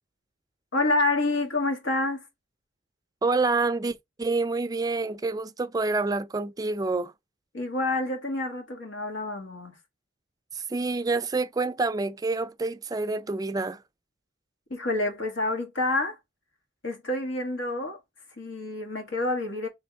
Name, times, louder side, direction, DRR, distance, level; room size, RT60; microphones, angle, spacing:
voice 1, 0.7-2.3 7.5-9.8 14.7-16.2 16.8-18.0 18.4-19.7, left 2 dB, 90° left, 1.8 m, -28 dB
voice 2, 3.2-7.1 10.5-13.8, right 3 dB, 20° right, 0.4 m, -27 dB
3.4 x 3.4 x 4.5 m
head